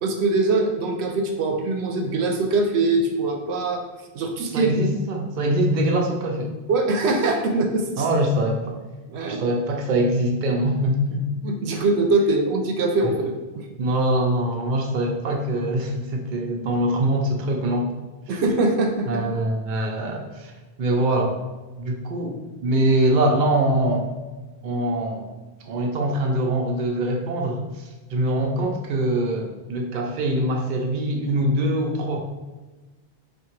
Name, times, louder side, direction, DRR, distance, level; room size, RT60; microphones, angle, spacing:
voice 1, 0.0-3.8 4.1-4.7 6.7-8.1 9.1-9.4 11.4-13.7 18.3-19.2, right 2 dB, 90° right, 3 dB, 0.9 m, -22 dB
voice 2, 4.5-6.5 8.0-8.8 9.3-11.2 13.0-13.1 13.8-17.9 19.1-20.5 20.8-21.4 21.8-22.4 22.6-24.1 24.6-25.3 25.6-32.2, right 1 dB, 55° right, 1 dB, 0.7 m, -23 dB
3.7 x 2.6 x 4.4 m, 1.2 s
omnidirectional pair, 1.1 m